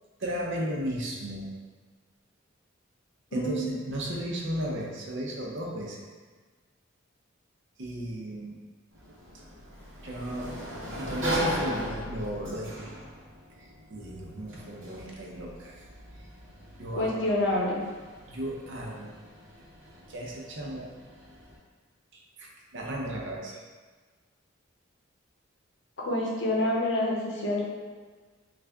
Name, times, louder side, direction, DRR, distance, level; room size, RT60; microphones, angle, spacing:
voice 1, 0.2-1.5 3.3-6.1 7.8-8.6 10.0-10.5 11.0-13.0 13.6-15.8 16.8-17.1 18.3-19.1 20.1-20.9 22.1-23.6, equal, 65° right, -2 dB, 0.6 m, -35 dB
voice 2, 3.3-3.8 16.9-17.8 26.0-27.6, left 1 dB, 65° left, -4 dB, 0.8 m, -27 dB
Sliding door, 8.9-21.6, equal, 80° right, 1.0 m, -38 dB
3.3 x 2.4 x 3.4 m, 1.4 s
head